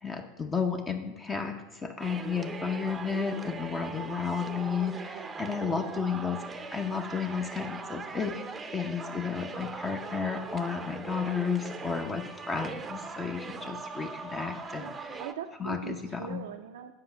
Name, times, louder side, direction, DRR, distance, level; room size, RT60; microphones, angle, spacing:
voice 1, 0.0-6.4 6.7-8.3 8.7-15.2 15.6-16.4, left 6 dB, 20° left, 5 dB, 0.7 m, -32 dB
sound 1, 2.0-15.3, right 4 dB, 20° right, 0.6 m, -40 dB
voice 2, 4.8-5.3 5.6-5.9 14.7-14.9 15.2-16.9, right 9 dB, 80° right, 4 dB, 0.4 m, -42 dB
7.7 x 5.0 x 5.6 m, 1.3 s
hypercardioid pair, 105°, 0 cm